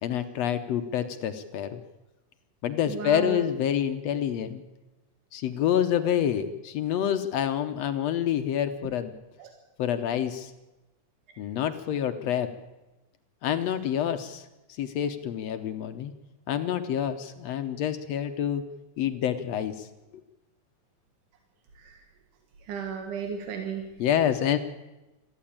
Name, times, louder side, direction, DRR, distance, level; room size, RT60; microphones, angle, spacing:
voice 1, 0.0-1.8 2.6-4.6 5.3-9.1 9.8-10.5 11.4-12.5 13.4-16.1 16.5-18.6 19.0-19.9 24.0-24.6, left 10 dB, 70° left, 9 dB, 1.8 m, -27 dB
voice 2, 2.8-3.4 9.4-9.5 21.7-22.0 22.6-23.9, right 6 dB, 85° right, 4 dB, 3.2 m, -34 dB
20.5 x 14.5 x 8.7 m, 1.0 s
omnidirectional pair, 3.6 m